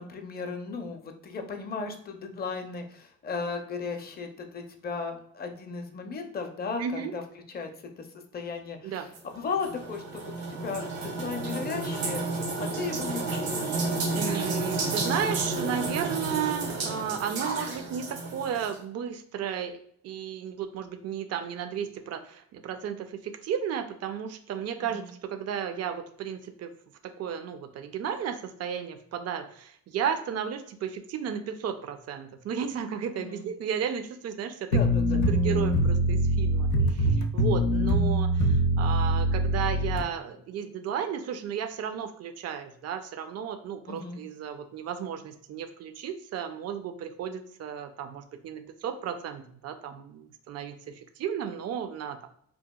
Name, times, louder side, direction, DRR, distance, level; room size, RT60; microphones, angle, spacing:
voice 1, 0.0-7.2 7.5-7.7 8.0-8.1 8.3-12.2 12.6-13.8 24.8-25.1 33.2-33.5 34.7-35.2 43.9-44.2, left 4 dB, 25° left, 5 dB, 0.5 m, -36 dB
voice 2, 6.8-7.1 8.8-9.1 14.1-19.8 20.0-26.7 27.2-34.8 35.3-50.8 51.2-52.3, right 8 dB, 45° right, 8 dB, 0.4 m, -34 dB
sound 1, 9.1-18.8, right 3 dB, 75° right, 1.0 m, -31 dB
sound 2, 34.7-40.0, equal, 80° left, 0.5 m, -24 dB
2.8 x 2.3 x 2.2 m, 0.65 s
cardioid pair, 80°, 36 cm